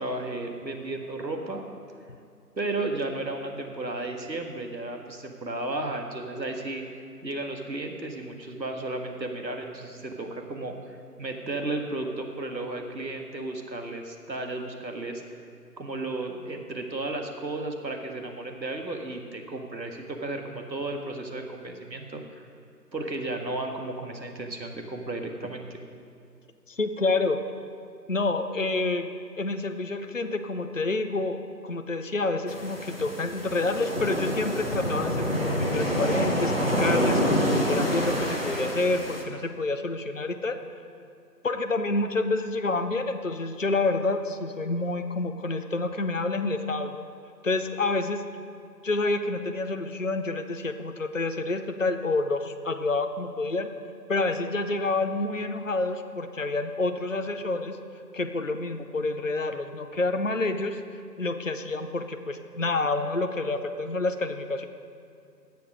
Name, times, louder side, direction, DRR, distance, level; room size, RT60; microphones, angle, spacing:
voice 1, 0.0-1.6 2.6-6.8 7.2-15.2 15.8-22.5 22.9-25.6, right 2 dB, 90° right, 3 dB, 1.8 m, -34 dB
voice 2, 26.7-27.4 28.1-40.6 41.4-47.1 47.4-48.3 48.8-53.7 54.1-57.8 58.1-60.8 61.2-64.7, left 2 dB, 50° left, 7 dB, 0.6 m, -28 dB
sound 1, 32.5-39.2, equal, 35° left, 1.1 m, -27 dB
17.0 x 6.9 x 5.2 m, 2.3 s
figure-of-eight pair, 175°, 50 cm